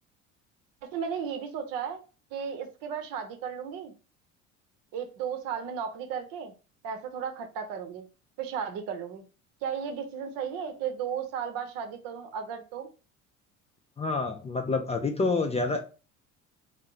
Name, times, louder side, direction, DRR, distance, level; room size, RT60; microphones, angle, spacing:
voice 1, 0.8-2.0 2.3-3.9 4.9-6.5 6.8-8.1 8.4-9.3 9.6-12.9, right 7 dB, 60° right, 7 dB, 0.7 m, -34 dB
voice 2, 14.0-15.8, left 3 dB, 15° left, 4 dB, 0.4 m, -28 dB
2.7 x 2.1 x 3.7 m, 0.33 s
hypercardioid pair, 65°, 39 cm